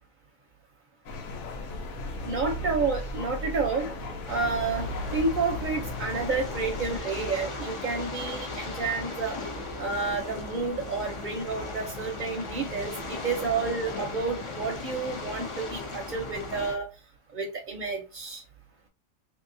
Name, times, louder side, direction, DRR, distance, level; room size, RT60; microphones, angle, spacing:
sound 1, 1.0-7.0, left 1 dB, 85° left, 1.2 m, -36 dB
voice 1, 2.2-3.9 4.3-9.4 9.8-16.9 17.3-18.4, right 4 dB, 45° right, 2 dB, 0.6 m, -30 dB
sound 2, 4.3-16.7, left 2 dB, 50° left, 0.3 m, -37 dB
3.4 x 2.8 x 2.6 m, 0.28 s
omnidirectional pair, 1.4 m